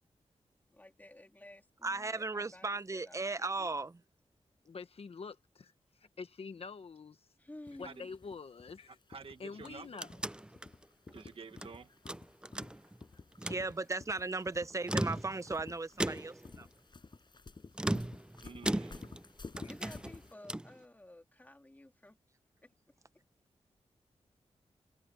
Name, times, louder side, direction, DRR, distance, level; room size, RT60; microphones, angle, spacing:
voice 1, 0.7-3.8 7.4-8.1 19.6-22.2 22.6-22.7, left 1 dB, 15° left, 3.1 m, -54 dB
voice 2, 1.8-4.0 13.4-16.7, right 3 dB, 30° right, 0.9 m, -36 dB
voice 3, 4.6-7.3 7.8-9.0 9.4-10.2, left 5 dB, 60° left, 1.4 m, -46 dB
sound 1, 7.7-20.3, left 4 dB, 45° left, 5.7 m, -53 dB
voice 4, 8.9-9.9 11.1-11.9 18.4-19.0, right 5 dB, 55° right, 1.7 m, -49 dB
sound 2, 9.5-11.7 12.1-13.0 13.3-13.7 14.7-15.6 16.0-16.5 17.7-19.3 19.6-20.8, right 1 dB, 10° right, 0.4 m, -37 dB
wide cardioid pair, 95°, 11 cm